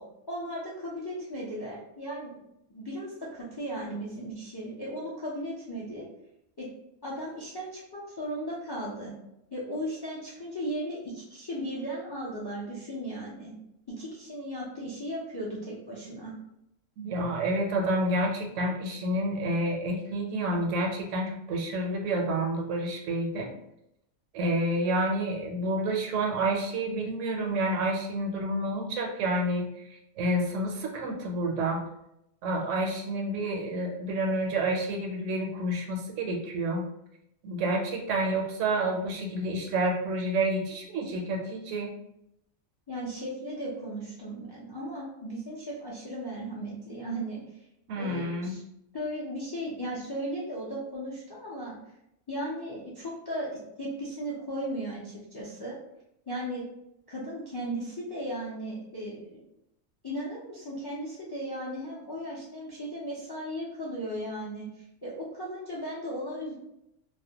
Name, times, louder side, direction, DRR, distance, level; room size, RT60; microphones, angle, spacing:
voice 1, 0.3-2.4 2.7-6.1 6.6-6.7 7.0-9.1 9.5-13.5 13.9-16.3 42.9-47.4 47.9-48.6 48.9-51.7 52.3-55.7 56.3-56.6 57.1-59.4 60.0-66.5, equal, 40° left, -6 dB, 0.3 m, -36 dB
voice 2, 17.0-23.5 24.3-31.8 32.4-36.8 37.4-41.9 47.9-48.6, right 1 dB, 80° right, 1 dB, 0.9 m, -29 dB
2.4 x 2.1 x 2.8 m, 0.81 s
omnidirectional pair, 1.3 m